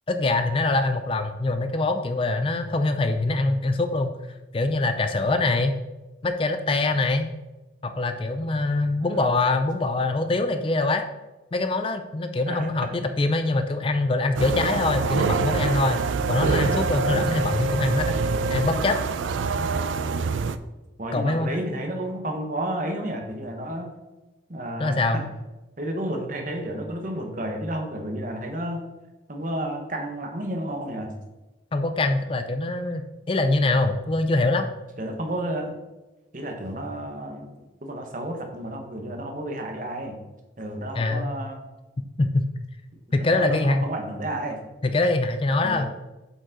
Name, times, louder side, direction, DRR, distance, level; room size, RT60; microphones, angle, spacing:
voice 1, 0.1-4.1 4.5-5.8 6.2-7.3 7.8-11.0 11.5-16.0 16.3-18.2 18.5-19.0 21.1-21.6 24.8-25.2 31.7-34.7 41.0-41.3 42.2-42.5 43.1-43.8 44.8-45.9, left 2 dB, 30° left, 8 dB, 0.4 m, -24 dB
voice 2, 9.0-9.3 12.5-12.7 21.0-23.9 24.5-25.0 25.8-28.8 29.3-31.1 35.0-35.7 36.3-40.2 40.6-41.6 43.1-44.6 45.6-45.8, right 1 dB, 45° right, 3 dB, 1.1 m, -31 dB
sound 1, 14.3-20.6, right 4 dB, 90° right, 0.4 m, -25 dB
7.8 x 5.2 x 3.8 m, 1.1 s
head